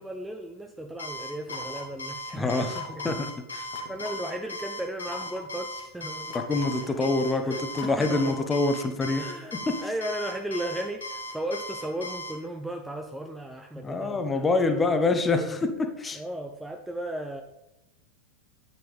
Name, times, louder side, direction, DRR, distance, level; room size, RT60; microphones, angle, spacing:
voice 1, 0.0-3.2 3.9-6.4 6.8-7.0 7.4-8.5 9.1-15.6 16.1-17.4, right 1 dB, 5° right, 5 dB, 0.5 m, -36 dB
Alarm, 1.0-12.3, left 1 dB, 75° left, 2.0 m, -37 dB
sound 1, 1.5-2.0 2.7-3.3 3.7-4.4 5.1-5.5 6.3-7.0 7.8-8.6, left 5 dB, 45° left, 1.2 m, -40 dB
voice 2, 2.3-2.7 3.0-3.3 6.5-9.2 9.7-9.8 13.8-15.6 16.0-16.2, left 3 dB, 15° left, 7 dB, 1.0 m, -25 dB
8.9 x 8.0 x 3.4 m, 0.92 s
figure-of-eight pair, 90°, 0 cm